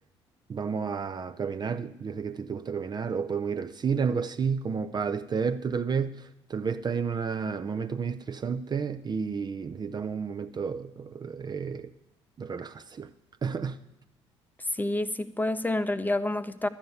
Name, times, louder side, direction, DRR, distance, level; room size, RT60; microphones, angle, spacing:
voice 1, 0.5-11.9 12.4-13.1 13.4-13.8, right 6 dB, 30° right, 0.6 m, -31 dB
voice 2, 14.7-16.7, left 2 dB, 10° left, 0.7 m, -28 dB
12.0 x 7.2 x 8.0 m
figure-of-eight pair, 50°, 14 cm